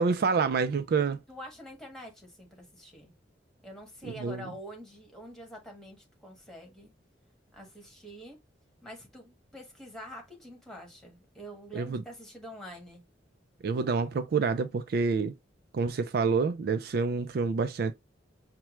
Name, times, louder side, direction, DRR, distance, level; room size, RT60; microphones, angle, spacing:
voice 1, 0.0-1.2 4.0-4.5 11.7-12.0 13.6-15.3 15.7-17.9, right 5 dB, 55° right, 0.3 m, -27 dB
voice 2, 1.3-3.1 3.6-6.9 7.5-8.4 8.8-13.0, equal, ahead, 1.4 m, -46 dB
5.8 x 2.2 x 3.0 m
head